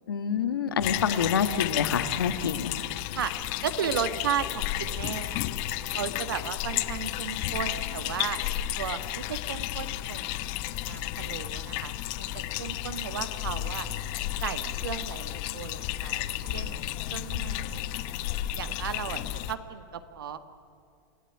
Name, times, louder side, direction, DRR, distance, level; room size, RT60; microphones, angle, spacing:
voice 1, 0.1-2.7, left 7 dB, 90° left, 9 dB, 1.7 m, -27 dB
sound 1, 0.8-19.5, left 13 dB, 50° left, 1.0 m, -32 dB
voice 2, 3.6-5.4 5.9-8.4 8.8-13.9 14.4-18.0 18.5-20.4, right 8 dB, 85° right, 10 dB, 1.7 m, -35 dB
27.5 x 16.5 x 9.8 m, 2.4 s
hypercardioid pair, 130°, 11 cm